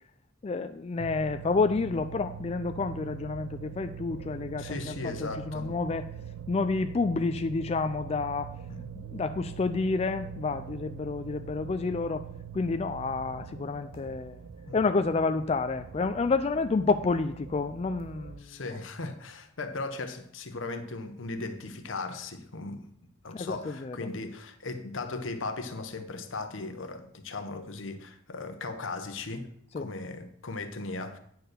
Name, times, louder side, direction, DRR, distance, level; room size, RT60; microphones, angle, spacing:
voice 1, 0.4-6.1 6.5-8.5 9.0-12.3 12.5-14.4 14.7-18.6 23.3-24.0 29.7-29.9, left 4 dB, 30° left, 0.3 m, -29 dB
sound 1, 1.0-18.4, right 8 dB, 80° right, 0.4 m, -43 dB
voice 2, 4.6-5.7 8.7-8.9 14.7-14.8 18.4-22.9 23.2-29.5 29.7-31.2, left 3 dB, 80° left, 1.0 m, -37 dB
9.3 x 4.5 x 6.6 m
head